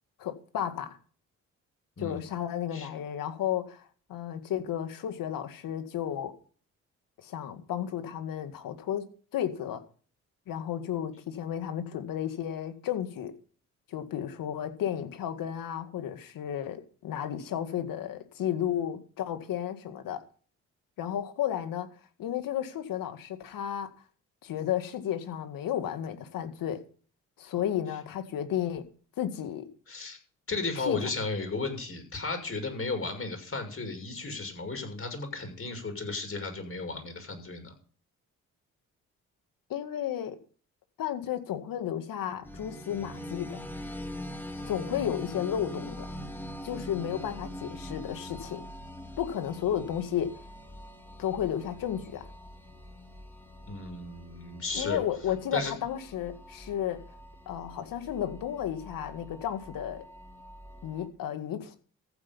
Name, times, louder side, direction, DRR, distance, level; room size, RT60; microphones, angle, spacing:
voice 1, 0.2-1.0 2.0-3.8 4.1-6.3 7.2-9.8 10.5-13.3 13.9-20.2 21.0-21.9 22.2-23.9 24.4-26.8 27.4-28.8 29.2-29.7 30.8-31.0 39.7-40.4 41.0-43.6 44.6-46.1 46.6-48.6 49.2-50.4 51.2-52.2 54.7-57.0 57.5-60.0 60.8-61.8, left 10 dB, 70° left, 2.1 m, -33 dB
voice 2, 29.9-30.2 30.5-37.7 53.7-55.0 55.5-55.7, left 3 dB, 40° left, 6.4 m, -34 dB
sound 1, 42.4-61.1, equal, 5° left, 3.1 m, -43 dB
14.5 x 8.4 x 5.5 m
supercardioid pair, 50°, 35 cm